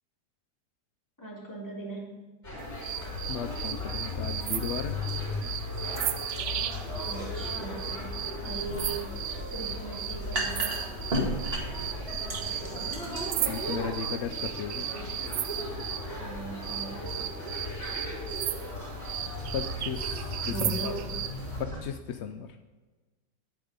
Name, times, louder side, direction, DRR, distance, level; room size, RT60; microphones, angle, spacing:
voice 1, 1.2-2.2 7.1-9.2 9.5-10.8 16.0-17.3 20.5-21.1, right 3 dB, 10° left, -5 dB, 3.4 m, -39 dB
sound 1, 2.4-21.8, left 2 dB, 35° left, 3.9 m, -37 dB
sound 2, 2.8-16.1 16.6-21.4, right 11 dB, 70° right, 0.7 m, -35 dB
voice 2, 3.3-5.0 13.5-14.9 19.5-20.9 21.6-22.5, left 7 dB, 75° left, 8 dB, 0.6 m, -35 dB
sound 3, 7.9-15.6, equal, 35° right, 1.9 m, -36 dB
9.7 x 9.4 x 5.2 m, 1.2 s
omnidirectional pair, 1.8 m